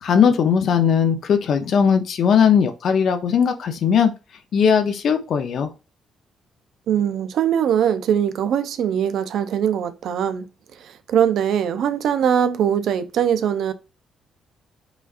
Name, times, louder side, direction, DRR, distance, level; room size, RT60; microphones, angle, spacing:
voice 1, 0.0-4.1 4.5-5.7, left 7 dB, 65° left, 0.7 m, -18 dB
voice 2, 6.9-10.4 11.1-13.7, right 9 dB, 75° right, 0.4 m, -21 dB
5.0 x 2.4 x 2.5 m
cardioid pair, 90°, 0 cm